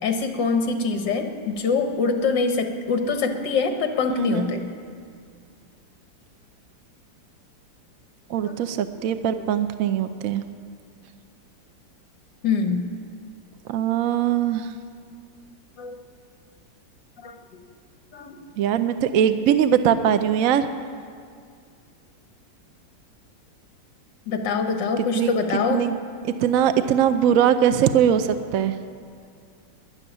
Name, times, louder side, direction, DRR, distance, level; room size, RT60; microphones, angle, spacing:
voice 1, 0.0-4.7 8.4-8.6 12.4-12.9 15.8-16.0 17.2-17.4 18.1-18.4 24.3-25.9, left 4 dB, 70° left, 5 dB, 1.9 m, -24 dB
voice 2, 8.3-10.4 13.7-14.7 18.6-20.7 25.1-25.3 25.7-25.9 26.4-28.7, right 9 dB, 70° right, 10 dB, 0.8 m, -21 dB
12.5 x 11.0 x 10.0 m, 2.2 s
omnidirectional pair, 2.1 m